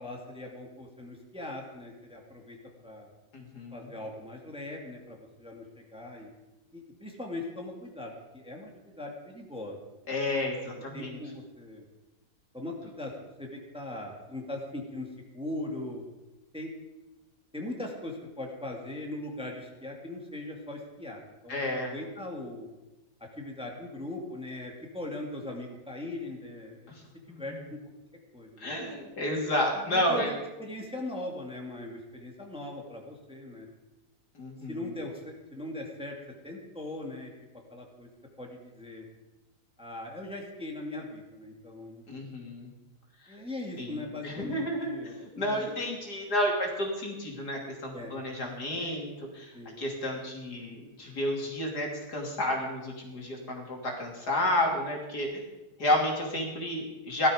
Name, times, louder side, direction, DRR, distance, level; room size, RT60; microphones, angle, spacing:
voice 1, 0.0-3.1 3.7-6.3 6.7-9.8 10.7-11.8 12.5-16.0 16.5-16.7 17.5-22.7 23.4-26.9 27.4-27.8 28.3-28.7 29.7-33.7 34.7-36.1 36.4-38.1 38.4-39.1 39.8-42.2 43.3-45.7 47.9-48.1 49.5-49.8, left 1 dB, 5° right, 1 dB, 2.2 m, -40 dB
voice 2, 3.3-3.8 10.1-11.2 21.5-21.9 27.3-27.4 28.6-30.3 34.4-34.8 42.1-42.7 43.8-45.0 45.4-49.1 49.3-49.5 49.8-55.3 55.8-57.3, left 1 dB, 70° left, 0 dB, 3.5 m, -31 dB
17.0 x 13.0 x 5.1 m, 1.0 s
omnidirectional pair, 1.8 m